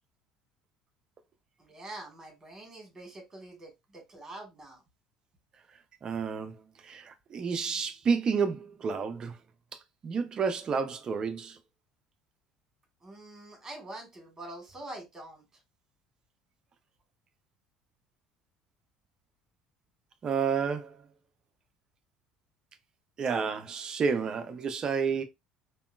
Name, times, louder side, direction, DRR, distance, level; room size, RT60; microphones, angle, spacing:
voice 1, 1.6-4.8 13.0-15.4, right 2 dB, 20° right, 1.5 m, -45 dB
voice 2, 6.0-6.6 6.8-9.4 10.0-11.6 20.2-21.0 23.2-25.2, right 5 dB, 35° right, 0.4 m, -30 dB
3.6 x 2.3 x 2.2 m
figure-of-eight pair, 60°, 2 cm